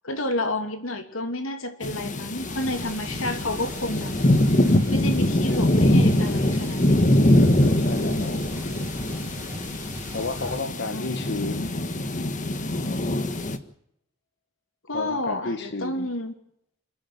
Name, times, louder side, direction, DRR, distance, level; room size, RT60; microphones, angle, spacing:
voice 1, 0.0-4.1 4.9-7.0 10.9-11.3 14.9-16.3, left 1 dB, 90° left, 2.9 m, -30 dB
sound 1, 1.8-13.6, left 1 dB, 40° left, 1.5 m, -23 dB
sound 2, 2.4-10.7, right 1 dB, 10° right, 6.3 m, -40 dB
voice 2, 7.8-8.5 10.1-11.8 14.9-16.1, left 3 dB, 60° left, 1.5 m, -32 dB
28.0 x 11.0 x 9.3 m
head